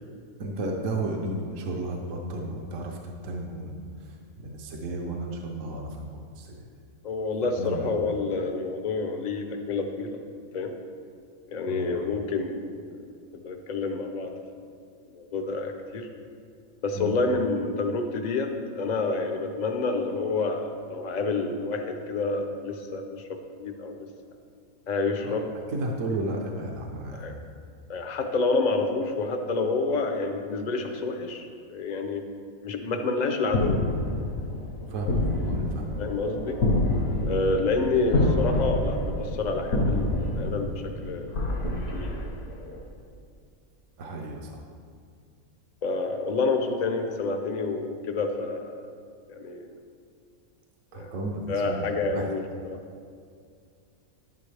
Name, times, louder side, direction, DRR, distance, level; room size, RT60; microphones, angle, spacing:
voice 1, 0.4-3.0 3.2-6.1 6.4-6.7 7.6-7.9 11.7-11.9 16.9-17.1 25.2-25.4 25.7-27.3 34.9-36.0 37.4-37.5 44.0-44.6 50.9-52.3, right 2 dB, 65° right, 1 dB, 1.2 m, -33 dB
voice 2, 7.0-10.2 10.5-10.8 11.5-13.0 13.4-14.4 15.1-16.1 16.8-24.1 24.9-25.5 27.1-27.3 27.9-32.2 32.6-34.0 36.0-36.6 37.3-41.3 41.9-42.3 45.8-48.7 49.3-49.7 50.9-51.1 51.5-52.8, left 3 dB, 40° left, 4 dB, 0.7 m, -28 dB
sound 1, 33.5-42.8, left 1 dB, 70° left, 1.7 m, -27 dB
11.0 x 9.6 x 3.4 m, 2.2 s
omnidirectional pair, 1.5 m